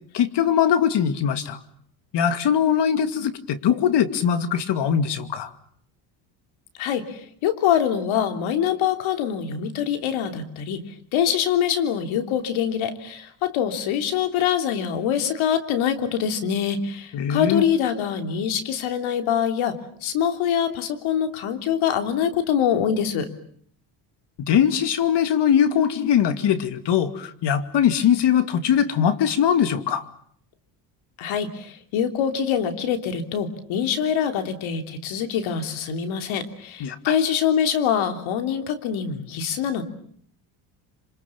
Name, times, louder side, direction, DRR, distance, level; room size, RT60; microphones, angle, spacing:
voice 1, 0.1-1.6 2.1-5.5 17.1-17.6 24.4-30.0 36.8-37.2, left 8 dB, 55° left, 11 dB, 2.5 m, -21 dB
voice 2, 6.8-10.8 11.1-23.3 31.2-39.8, left 8 dB, 75° left, 8 dB, 3.4 m, -24 dB
26.5 x 26.5 x 7.2 m, 0.62 s
cardioid pair, 100°, 48 cm